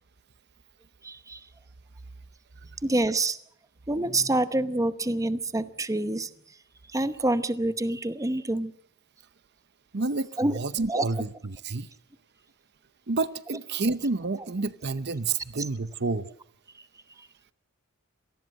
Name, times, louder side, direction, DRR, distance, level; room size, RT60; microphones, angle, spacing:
voice 1, 1.0-1.4 2.8-3.4 3.9-6.3 6.9-8.7 10.4-10.6 10.9-11.1, right 2 dB, 15° right, 12 dB, 0.8 m, -26 dB
voice 2, 9.9-11.9 13.1-16.3, right 3 dB, 50° right, 15 dB, 0.8 m, -29 dB
26.0 x 19.0 x 6.5 m, 0.62 s
head